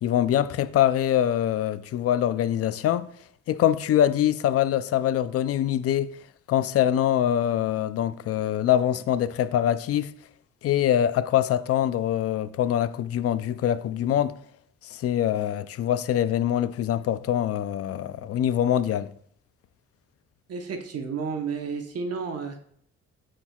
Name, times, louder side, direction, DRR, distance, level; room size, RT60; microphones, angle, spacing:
voice 1, 0.0-3.1 3.5-6.1 6.5-10.1 10.6-14.3 14.9-19.1, left 11 dB, 50° left, 0.4 m, -24 dB
voice 2, 20.5-22.7, right 5 dB, 55° right, 0.9 m, -32 dB
9.6 x 4.5 x 2.3 m
cardioid pair, 90°, 30 cm